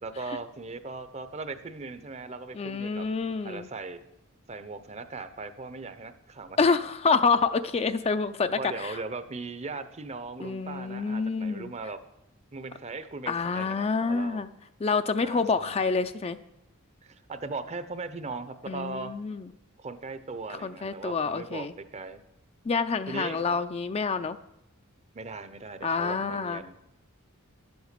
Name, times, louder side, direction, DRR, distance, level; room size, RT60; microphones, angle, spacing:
voice 1, 0.0-3.1 3.4-4.0 4.5-6.8 8.6-12.0 12.5-14.4 15.2-15.8 17.0-19.1 19.8-22.2 23.1-23.6 25.1-26.8, right 3 dB, 30° right, 12 dB, 0.6 m, -39 dB
voice 2, 2.5-3.7 6.6-9.0 10.4-11.7 13.3-14.5 14.8-16.4 18.7-19.4 20.6-21.7 22.7-24.4 25.8-26.6, left 4 dB, 30° left, 10 dB, 0.4 m, -27 dB
11.5 x 7.9 x 6.7 m, 0.85 s
head